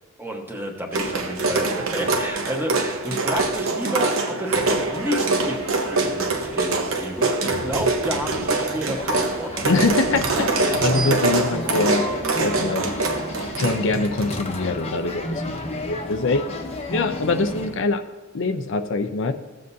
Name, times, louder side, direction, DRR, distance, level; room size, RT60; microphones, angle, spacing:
voice 1, 0.2-9.5, equal, 10° right, 1 dB, 1.2 m, -30 dB
sound 1, 0.9-14.4, right 3 dB, 65° right, 1.1 m, -24 dB
sound 2, 4.7-17.8, left 2 dB, 30° left, 0.9 m, -33 dB
voice 2, 9.6-12.1 12.4-12.9 13.6-16.5 16.9-18.0 18.3-19.3, left 3 dB, 60° left, 8 dB, 0.6 m, -24 dB
15.5 x 7.7 x 2.7 m, 1.3 s
head